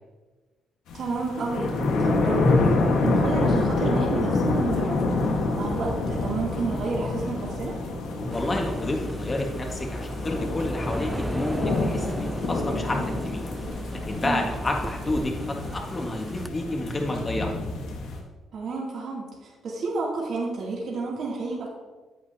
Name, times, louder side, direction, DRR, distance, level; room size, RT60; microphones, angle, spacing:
sound 1, 0.9-18.2, left 3 dB, 90° left, 1.5 m, -27 dB
voice 1, 0.9-1.7 2.0-7.8 14.2-14.5 18.5-21.7, right 3 dB, 60° right, -4 dB, 2.8 m, -30 dB
voice 2, 8.3-13.4 13.9-17.5, left 2 dB, 30° left, 1 dB, 1.7 m, -30 dB
sound 2, 8.3-16.5, right 1 dB, 10° right, 0.4 m, -35 dB
10.5 x 8.5 x 2.9 m, 1.3 s
cardioid pair, 90°, 0 cm